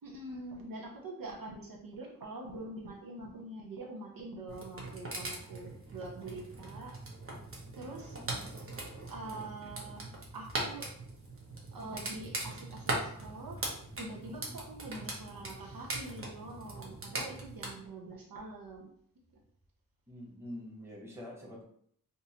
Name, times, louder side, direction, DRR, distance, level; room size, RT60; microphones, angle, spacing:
voice 1, 0.0-7.0 7.7-8.2 9.1-10.9 11.7-13.6 14.0-18.9, right 2 dB, 70° right, -1 dB, 0.8 m, -45 dB
sound 1, 4.5-17.7, right 2 dB, 40° right, 0.9 m, -41 dB
voice 2, 7.8-8.5 14.4-14.6 20.1-21.6, left 1 dB, 5° right, -4 dB, 1.1 m, -47 dB
3.7 x 2.6 x 2.8 m, 0.64 s
wide cardioid pair, 120°, 35 cm